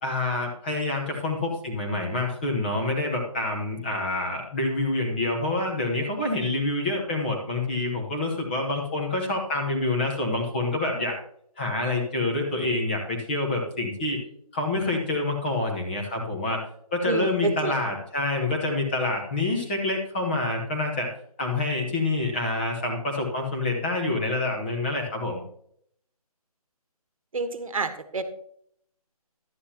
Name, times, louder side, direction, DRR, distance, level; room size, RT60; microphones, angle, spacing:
voice 1, 0.0-11.2 11.6-14.2 14.5-16.6 16.9-21.1 21.4-25.4, left 2 dB, 15° left, 1 dB, 1.0 m, -27 dB
voice 2, 17.0-17.7 27.3-28.2, right 4 dB, 60° right, 10 dB, 1.2 m, -28 dB
11.5 x 9.4 x 2.8 m, 0.67 s
hypercardioid pair, 175°, 20 cm